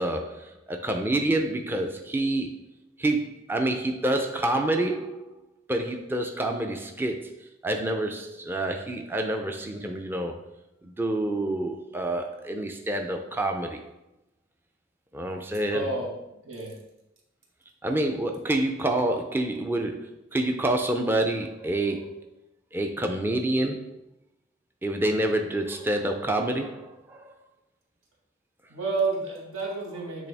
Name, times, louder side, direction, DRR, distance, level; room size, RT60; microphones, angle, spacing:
voice 1, 0.0-2.5 3.0-10.4 10.8-13.9 15.1-15.9 17.8-22.3 22.7-23.9 24.8-27.3, right 1 dB, 10° right, 4 dB, 0.4 m, -28 dB
voice 2, 15.7-16.1 16.4-16.8 28.7-30.3, right 3 dB, 90° right, -2 dB, 1.7 m, -30 dB
8.5 x 3.4 x 3.4 m, 0.87 s
head